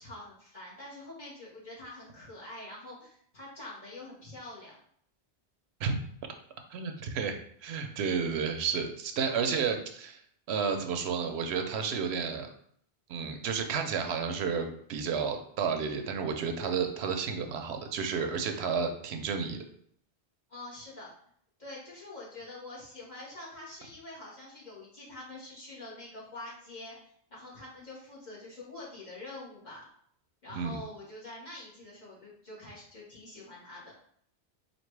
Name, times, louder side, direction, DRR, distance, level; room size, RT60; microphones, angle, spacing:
voice 1, 0.0-4.8 20.5-21.1 21.6-29.8 30.4-33.9, left 2 dB, 45° left, -7 dB, 1.7 m, -45 dB
voice 2, 6.7-10.2 10.5-12.5 13.1-19.6 30.6-30.8, right 6 dB, 80° right, 6 dB, 0.8 m, -31 dB
4.3 x 2.7 x 3.2 m, 0.65 s
omnidirectional pair, 1.1 m